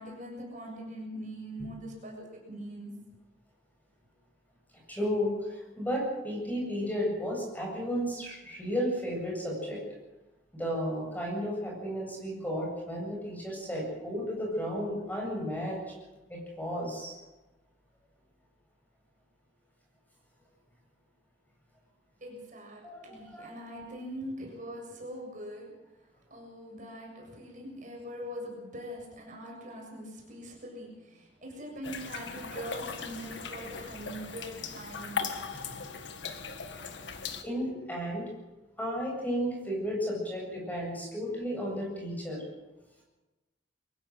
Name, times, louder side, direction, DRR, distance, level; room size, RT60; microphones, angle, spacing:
voice 1, 0.0-2.9 22.2-25.7 26.3-35.2 36.5-36.6 37.3-37.9, equal, 45° right, 0 dB, 7.2 m, -42 dB
voice 2, 4.9-9.8 10.5-15.8 16.3-17.1 22.8-23.5 35.5-35.9 37.4-38.2 38.8-42.4, equal, 10° left, -2 dB, 8.0 m, -33 dB
sound 1, 31.8-37.4, left 5 dB, 85° left, 1.8 m, -38 dB
23.5 x 16.0 x 7.8 m, 1.1 s
head